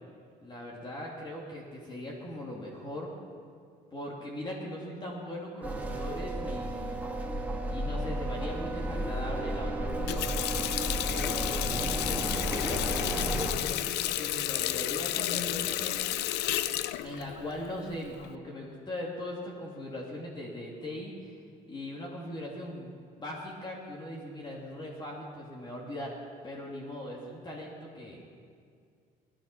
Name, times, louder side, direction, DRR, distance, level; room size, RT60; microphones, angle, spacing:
voice 1, 0.4-3.1 3.9-7.0 7.7-10.3 11.0-16.2 17.0-21.4 21.7-26.1 26.4-28.4, left 1 dB, 25° left, -4 dB, 2.9 m, -40 dB
sound 1, 5.6-13.5, right 1 dB, 10° right, 1.8 m, -33 dB
Water tap faucet, 9.9-18.3, left 14 dB, 80° left, 0.5 m, -32 dB
18.0 x 11.5 x 6.1 m, 2.2 s
cardioid pair, 110°, 17 cm